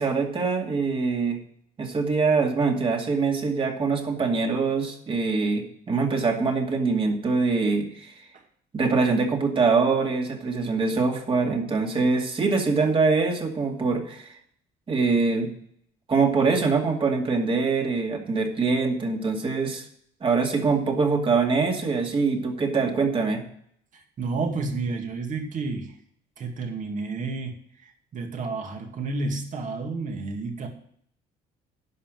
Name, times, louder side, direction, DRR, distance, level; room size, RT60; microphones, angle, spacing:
voice 1, 0.0-1.4 1.8-8.1 8.7-14.3 14.9-15.5 16.1-19.9 20.2-23.4, right 4 dB, 30° right, 2 dB, 2.3 m, -24 dB
voice 2, 23.9-26.0 26.4-30.7, right 3 dB, 50° right, 3 dB, 2.3 m, -31 dB
11.0 x 5.8 x 7.7 m, 0.65 s
cardioid pair, 110°, 17 cm